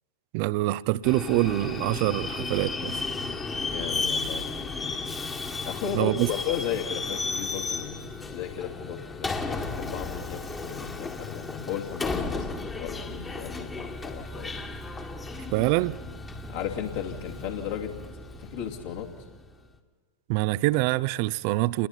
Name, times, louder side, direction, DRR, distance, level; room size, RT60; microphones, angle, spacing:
voice 1, 0.3-3.0 5.9-6.3 15.5-16.0 20.3-21.9, right 18 dB, 45° right, 0.5 m, -25 dB
Subway metro underground, 1.0-19.5, left 3 dB, 15° left, 1.7 m, -34 dB
voice 2, 3.6-4.5 5.7-12.5 12.7-14.5 16.5-17.9 18.4-19.1, left 8 dB, 55° left, 2.8 m, -35 dB
29.5 x 21.0 x 4.4 m
figure-of-eight pair, 90°, 0 cm